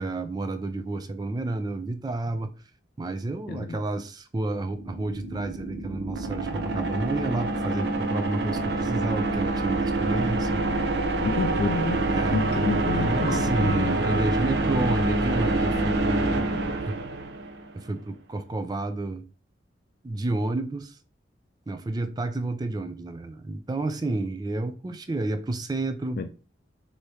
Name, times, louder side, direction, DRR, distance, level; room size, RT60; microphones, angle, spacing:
voice 1, 0.0-2.5 3.0-10.9 12.1-16.9 17.7-19.2 20.0-21.0 21.7-26.2, right 2 dB, 20° right, 0.4 m, -30 dB
voice 2, 3.5-3.8 11.2-14.0 26.2-26.3, left 4 dB, 55° left, 0.3 m, -29 dB
sound 1, 4.7-17.7, right 2 dB, 65° right, 0.6 m, -26 dB
4.6 x 2.8 x 3.1 m
head